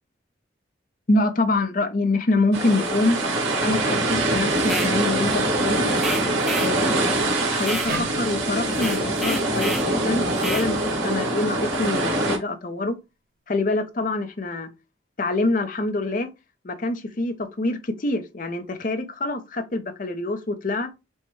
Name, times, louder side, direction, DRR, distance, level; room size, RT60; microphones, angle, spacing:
voice 1, 1.1-3.2 3.6-6.0 6.5-13.0 13.5-14.7 15.2-16.3 16.6-20.9, left 2 dB, 40° left, 0.6 m, -25 dB
sound 1, 2.5-12.4, right 2 dB, 85° right, 1.7 m, -24 dB
sound 2, 4.6-5.0 6.0-6.8 7.6-7.9 8.7-9.9 10.4-10.7, right 1 dB, ahead, 0.4 m, -30 dB
sound 3, 7.9-11.1, right 2 dB, 45° right, 1.1 m, -38 dB
6.3 x 2.2 x 3.1 m
head